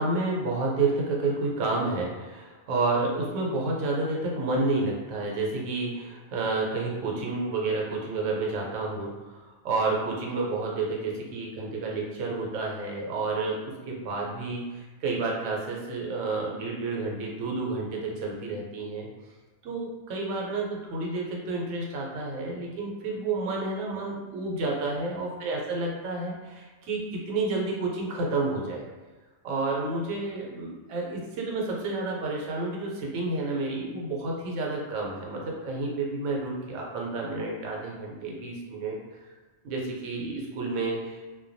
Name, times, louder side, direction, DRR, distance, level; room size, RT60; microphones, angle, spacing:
voice 1, 0.0-9.4 9.6-19.1 19.6-28.9 29.4-39.0 39.6-41.3, right 3 dB, 75° right, -2 dB, 0.9 m, -30 dB
2.2 x 2.2 x 2.5 m, 1.3 s
omnidirectional pair, 1.3 m